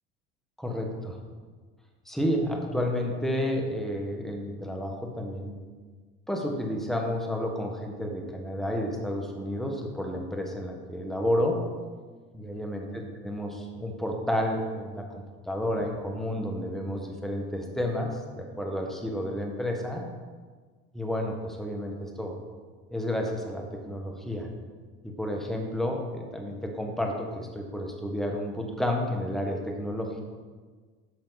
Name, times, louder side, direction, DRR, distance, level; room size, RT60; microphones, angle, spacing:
voice 1, 0.6-1.2 2.1-5.5 6.3-11.6 12.3-20.1 20.9-22.3 22.9-24.5 25.0-30.2, equal, ahead, 1 dB, 1.5 m, -31 dB
10.5 x 6.4 x 4.1 m, 1.5 s
supercardioid pair, 115°, 29 cm